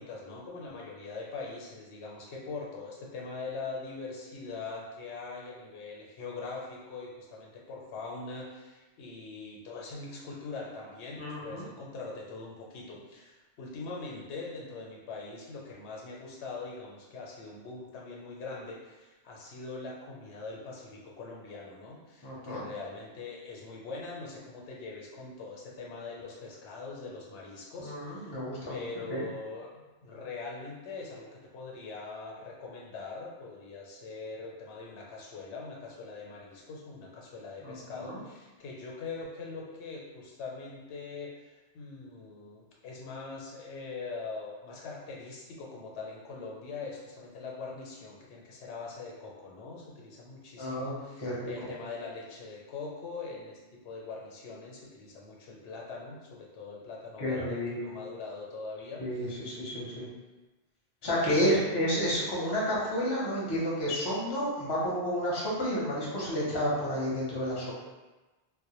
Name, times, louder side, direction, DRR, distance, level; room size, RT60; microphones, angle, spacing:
voice 1, 0.0-28.4 28.7-53.6 53.8-59.3 61.2-61.7, left 3 dB, 85° left, -3 dB, 0.9 m, -42 dB
voice 2, 11.2-11.6 22.2-22.6 27.8-28.8 29.1-29.2 37.6-38.2 50.6-51.5 57.2-57.8 59.0-60.1 61.0-67.7, equal, 30° left, -6 dB, 0.5 m, -31 dB
2.1 x 2.1 x 2.9 m, 1.2 s
omnidirectional pair, 1.1 m